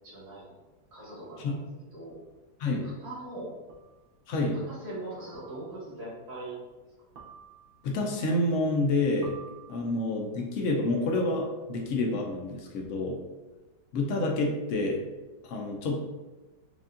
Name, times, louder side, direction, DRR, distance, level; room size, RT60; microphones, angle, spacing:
voice 1, 0.0-0.6 0.9-1.6 1.9-2.2 2.8-3.5 4.5-6.6, right 2 dB, 50° right, -9 dB, 1.9 m, -41 dB
sound 1, 2.1-2.2 3.7-4.1 5.3-5.9 7.2-7.9 9.2-10.2, right 6 dB, 70° right, 0.5 m, -51 dB
voice 2, 4.3-4.6 7.8-9.4 9.7-13.2 13.9-15.0 15.4-16.0, left 2 dB, 70° left, 0 dB, 0.7 m, -28 dB
4.9 x 2.5 x 2.5 m, 1.1 s
omnidirectional pair, 1.9 m